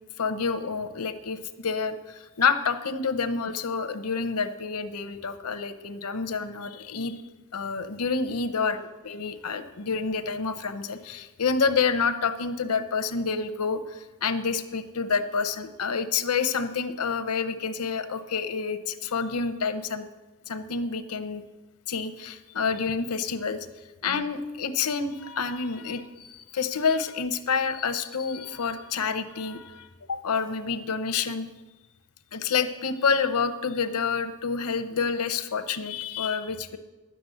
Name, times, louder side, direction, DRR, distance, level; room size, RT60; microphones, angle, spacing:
voice 1, 0.2-7.2 7.5-20.1 20.5-21.4 21.9-23.7 24.0-31.5 32.3-36.8, left 5 dB, 85° left, 10 dB, 0.8 m, -28 dB
10.5 x 7.7 x 7.9 m, 1.2 s
head